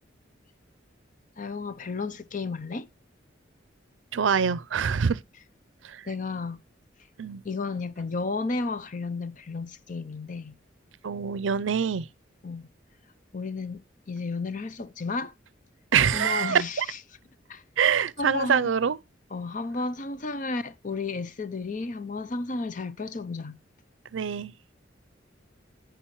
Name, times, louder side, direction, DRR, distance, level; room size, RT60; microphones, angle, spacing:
voice 1, 1.4-2.9 6.1-6.6 7.4-10.6 12.4-12.7 13.3-13.8 14.1-15.3 16.1-17.0 17.5-17.6 18.2-18.7 19.3-23.6, left 3 dB, 40° left, 0.7 m, -32 dB
voice 2, 4.1-5.2 5.8-6.0 7.2-7.4 11.0-12.1 15.9-16.9 17.8-19.0 24.1-24.5, right 7 dB, 85° right, 0.5 m, -25 dB
10.0 x 9.3 x 3.1 m
head